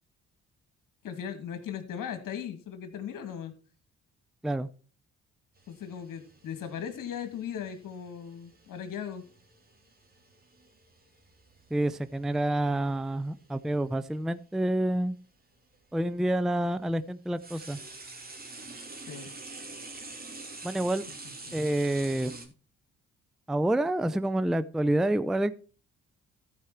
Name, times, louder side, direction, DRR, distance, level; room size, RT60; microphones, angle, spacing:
voice 1, 1.0-3.5 5.7-9.3 19.1-19.3 21.1-21.6, left 8 dB, 60° left, 9 dB, 1.9 m, -38 dB
sound 1, 5.6-13.7 14.8-14.9 15.7-22.5, right 3 dB, 25° right, 2.6 m, -47 dB
voice 2, 11.7-15.2 15.9-17.8 20.6-21.0 21.5-22.5 23.5-25.6, right 1 dB, ahead, 14 dB, 0.5 m, -28 dB
14.5 x 4.8 x 4.4 m, 0.39 s
hypercardioid pair, 45°, 36 cm